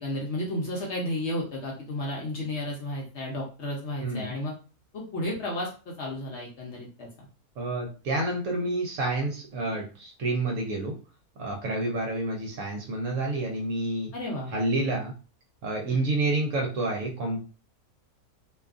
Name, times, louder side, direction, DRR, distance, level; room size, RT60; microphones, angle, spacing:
voice 1, 0.0-4.5 4.9-7.3 14.1-14.9 15.9-16.1, left 1 dB, 60° left, -2 dB, 0.8 m, -33 dB
voice 2, 4.0-4.3 7.6-10.9 11.4-14.1 14.5-15.1 15.6-17.4, right 2 dB, 65° right, 1 dB, 0.9 m, -29 dB
2.6 x 2.3 x 2.4 m, 0.34 s
omnidirectional pair, 1.6 m